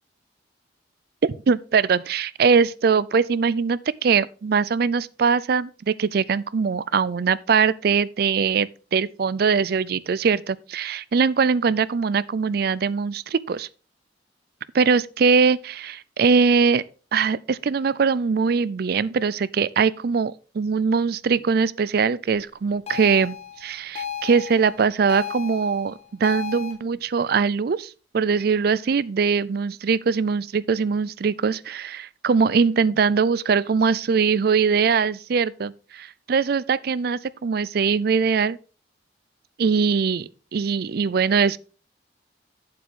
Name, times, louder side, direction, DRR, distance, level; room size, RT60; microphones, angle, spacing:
voice 1, 1.2-13.7 14.7-16.8 17.1-38.6 39.6-41.6, right 5 dB, 55° right, 0.4 m, -22 dB
sound 1, 22.9-26.7, left 8 dB, 35° left, 1.5 m, -34 dB
8.6 x 7.5 x 3.7 m
head